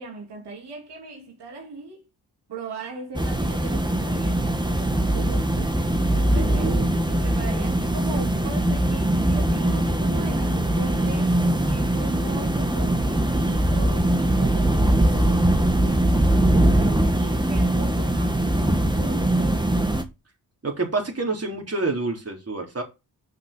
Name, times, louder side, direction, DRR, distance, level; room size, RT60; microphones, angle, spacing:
voice 1, 0.0-2.0 2.5-5.7 6.0-6.7 7.1-16.1 16.5-19.7, right 3 dB, 60° right, 3.0 m, -38 dB
sound 1, 3.1-20.0, right 1 dB, 10° right, 2.2 m, -21 dB
voice 2, 6.3-7.0 20.6-22.8, right 3 dB, 30° right, 3.8 m, -28 dB
6.6 x 5.5 x 7.0 m
hypercardioid pair, 40°, 45 cm